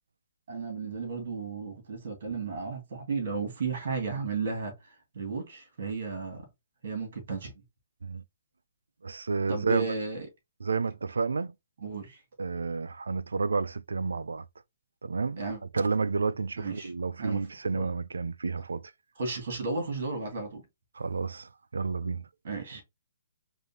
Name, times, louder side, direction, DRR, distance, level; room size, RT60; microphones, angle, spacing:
voice 1, 0.5-6.4 6.8-7.5 9.5-10.3 11.8-12.2 15.4-15.6 16.6-16.9 17.2-17.4 17.7-17.9 19.2-20.6 22.4-22.8, right 4 dB, 60° right, 2.2 m, -34 dB
voice 2, 9.0-9.9 10.6-11.5 12.4-14.4 15.0-15.4 15.7-18.8 21.0-22.2, right 4 dB, 85° right, 0.3 m, -30 dB
4.9 x 2.6 x 2.8 m
hypercardioid pair, 140°, 0 cm